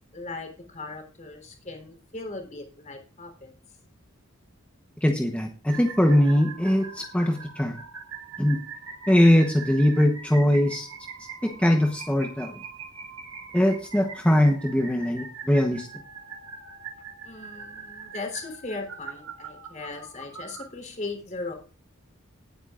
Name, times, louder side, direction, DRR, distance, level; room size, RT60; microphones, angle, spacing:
voice 1, 0.1-3.5 17.2-21.5, left 3 dB, 35° left, 3 dB, 3.6 m, -38 dB
voice 2, 5.0-7.8 8.4-8.6 9.1-10.9 11.4-12.5 13.5-15.9, equal, 5° left, 2 dB, 0.9 m, -21 dB
sound 1, 5.7-20.7, right 5 dB, 80° right, 2.7 m, -42 dB
19.0 x 8.9 x 2.5 m, 0.39 s
head